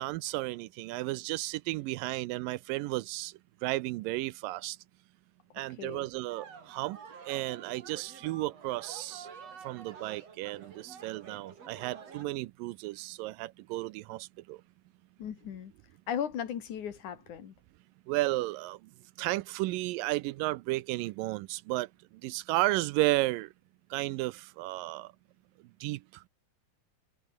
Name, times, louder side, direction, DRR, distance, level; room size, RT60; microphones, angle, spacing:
voice 1, 0.0-3.3 3.6-4.8 5.6-7.0 7.2-9.3 9.6-14.6 18.1-18.9 19.2-21.9 22.2-23.5 23.9-25.1 25.8-26.2, right 19 dB, 80° right, 2.3 m, -33 dB
sound 1, 6.3-12.2, right 6 dB, 50° right, 3.9 m, -49 dB
voice 2, 15.2-15.7 16.1-17.5, left 8 dB, 60° left, 3.3 m, -36 dB
omnidirectional pair, 4.0 m